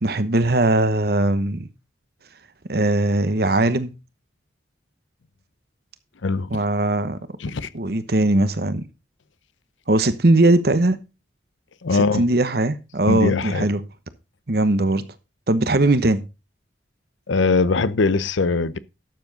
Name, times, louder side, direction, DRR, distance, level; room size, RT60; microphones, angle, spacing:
voice 1, 0.0-1.7 2.7-3.9 6.5-7.2 7.7-8.8 9.9-11.0 11.9-13.8 14.5-15.0 15.5-16.2, right 2 dB, 55° right, 1.0 m, -19 dB
voice 2, 11.8-12.2 13.1-13.7 17.3-18.8, left 3 dB, 90° left, 0.7 m, -21 dB
12.0 x 7.1 x 4.0 m
head